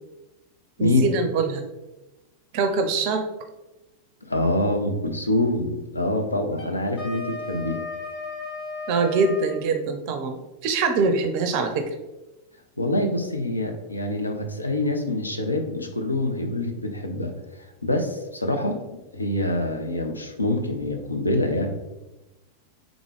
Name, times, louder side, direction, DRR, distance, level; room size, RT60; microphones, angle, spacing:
voice 1, 0.8-1.6 2.5-3.2 8.9-11.9, right 4 dB, 45° right, 6 dB, 0.4 m, -24 dB
voice 2, 4.2-7.8 12.8-17.3 17.6-21.7, left 1 dB, 80° left, 4 dB, 0.5 m, -25 dB
Wind instrument woodwind instrument, 6.5-9.6, left 3 dB, 50° left, 1.3 m, -34 dB
3.6 x 3.6 x 3.4 m, 1.0 s
figure-of-eight pair, 90°, 0 cm